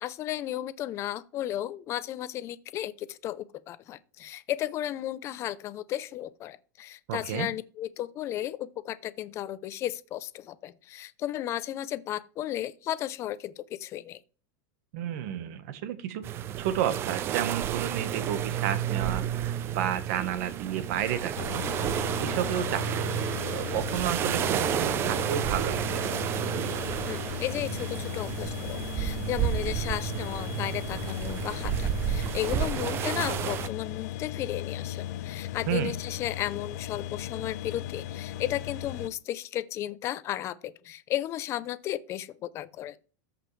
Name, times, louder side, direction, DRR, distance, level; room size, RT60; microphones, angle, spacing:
voice 1, 0.0-14.2 27.1-43.0, left 13 dB, 25° left, 0.5 m, -34 dB
voice 2, 7.1-7.5 14.9-21.6 22.2-23.2 23.5-26.0 35.7-35.9, right 10 dB, 55° right, 1.2 m, -31 dB
sound 1, 16.2-33.7, right 10 dB, 25° right, 0.4 m, -31 dB
sound 2, 21.4-39.1, left 12 dB, 60° left, 0.8 m, -37 dB
14.0 x 5.1 x 3.3 m
supercardioid pair, 160°, 10 cm